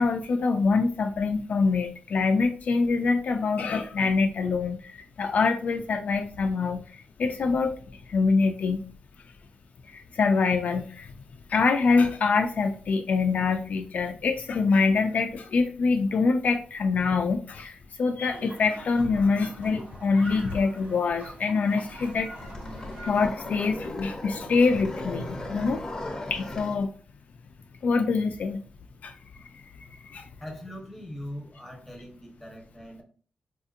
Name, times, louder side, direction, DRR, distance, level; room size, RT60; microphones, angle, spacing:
voice 1, 0.0-7.7 8.1-8.8 9.9-11.1 11.5-22.3 23.0-25.8 26.3-26.9 27.8-28.6 29.0-29.1 30.0-30.3, left 4 dB, 60° left, 5 dB, 0.3 m, -25 dB
sound 1, 18.3-23.3, right 1 dB, 80° right, 1.3 m, -45 dB
sound 2, 22.1-26.8, left 1 dB, 20° left, 0.6 m, -37 dB
voice 2, 30.4-33.0, equal, ahead, 0 dB, 1.0 m, -41 dB
4.2 x 2.7 x 2.4 m, 0.42 s
wide cardioid pair, 125°, 3 cm